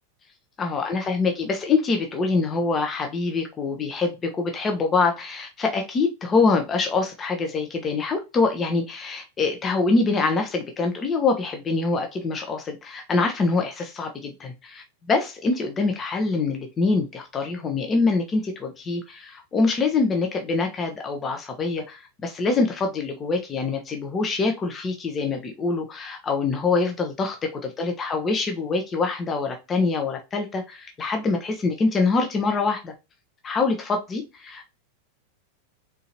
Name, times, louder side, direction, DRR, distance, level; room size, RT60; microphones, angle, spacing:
voice 1, 0.6-32.9 33.4-34.7, left 4 dB, 20° left, 0.8 m, -25 dB
3.9 x 3.8 x 2.8 m
figure-of-eight pair, 90°, 0 cm